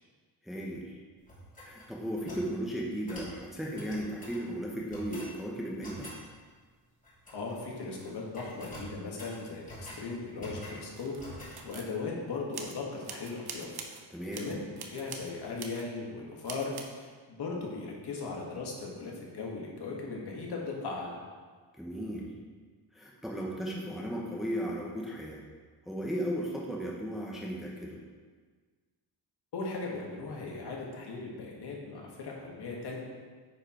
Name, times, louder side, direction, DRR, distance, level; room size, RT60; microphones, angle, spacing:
voice 1, 0.4-1.0 1.6-6.1 14.1-14.5 21.7-22.3 22.9-25.4 25.9-28.0, equal, ahead, -3 dB, 1.1 m, -35 dB
sound 1, 1.3-2.5 3.1-3.3 3.7-4.4 4.9-5.3 5.8-6.2 7.0-7.6 7.9-8.1 8.3-10.0 10.4-10.8 11.2-11.6, equal, 20° left, 2.6 m, -46 dB
voice 2, 7.3-13.8 14.3-14.6 14.9-21.2 29.5-33.0, left 3 dB, 65° left, -2 dB, 1.9 m, -38 dB
sound 2, 10.9-12.0 12.5-12.8 13.0-14.0 14.3-15.3 15.6-15.9 16.4-16.8, right 5 dB, 60° right, 1.0 m, -44 dB
9.6 x 4.8 x 4.5 m, 1.5 s
cardioid pair, 120°, 43 cm